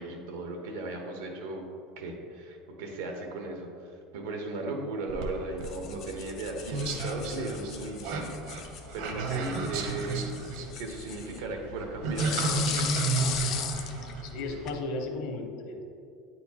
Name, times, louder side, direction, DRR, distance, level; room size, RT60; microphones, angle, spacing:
voice 1, 0.0-1.7 2.0-3.7 4.1-10.2 10.8-13.1, right 2 dB, 90° right, 2 dB, 1.0 m, -36 dB
sound 1, 5.1-14.7, right 3 dB, 60° right, 0.8 m, -33 dB
sound 2, 5.6-14.8, left 9 dB, 40° left, 0.3 m, -38 dB
voice 2, 14.2-15.8, left 2 dB, 55° left, 3 dB, 0.8 m, -35 dB
8.6 x 4.3 x 2.9 m, 2.4 s
cardioid pair, 165°, 0 cm